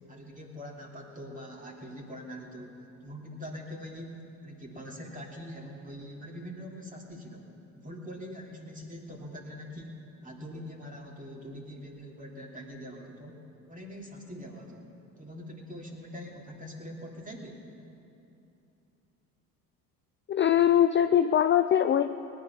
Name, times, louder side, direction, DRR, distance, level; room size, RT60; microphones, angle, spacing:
voice 1, 0.1-2.8 3.0-4.1 4.4-7.5 7.7-13.4 13.7-14.9 15.2-17.6, equal, 20° right, -1 dB, 2.8 m, -43 dB
voice 2, 20.3-22.2, left 10 dB, 25° left, 9 dB, 0.5 m, -22 dB
19.0 x 10.5 x 5.8 m, 2.8 s
hypercardioid pair, 65°, 44 cm